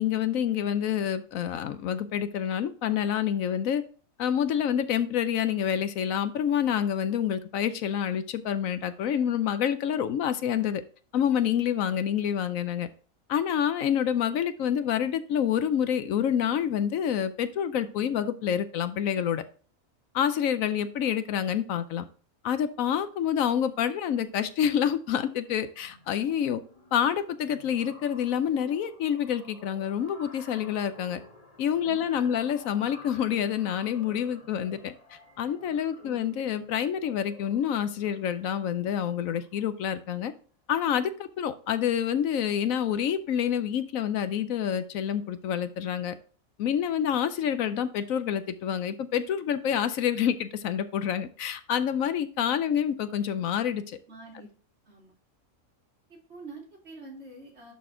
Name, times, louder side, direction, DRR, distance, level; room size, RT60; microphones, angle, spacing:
voice 1, 0.0-3.8 4.2-10.8 11.1-12.9 13.3-19.4 20.1-22.0 22.4-26.6 26.9-31.2 31.6-40.3 40.7-46.1 46.6-54.0, left 9 dB, 75° left, 12 dB, 1.0 m, -27 dB
sound 1, 24.5-24.7 25.0-39.9, left 2 dB, 25° left, 2.2 m, -52 dB
voice 2, 31.8-32.4 35.7-36.2 54.1-54.5 54.9-55.2 56.1-57.7, right 3 dB, 50° right, -2 dB, 2.7 m, -47 dB
11.0 x 4.2 x 3.7 m, 0.40 s
omnidirectional pair, 1.5 m